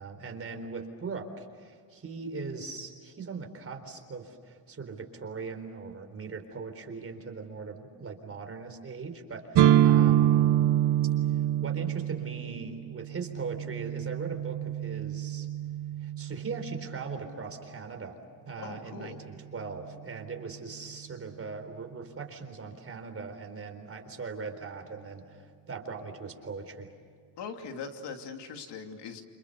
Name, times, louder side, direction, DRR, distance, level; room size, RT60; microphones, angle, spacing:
voice 1, 0.0-10.7 11.6-15.5 16.0-18.2 18.5-26.9, right 4 dB, 30° right, 5 dB, 4.1 m, -40 dB
sound 1, 9.5-17.3, right 11 dB, 65° right, 1.2 m, -26 dB
voice 2, 18.6-19.2 27.4-29.2, left 5 dB, 75° left, 5 dB, 2.9 m, -41 dB
28.5 x 28.0 x 6.8 m, 2.1 s
cardioid pair, 120°, 42 cm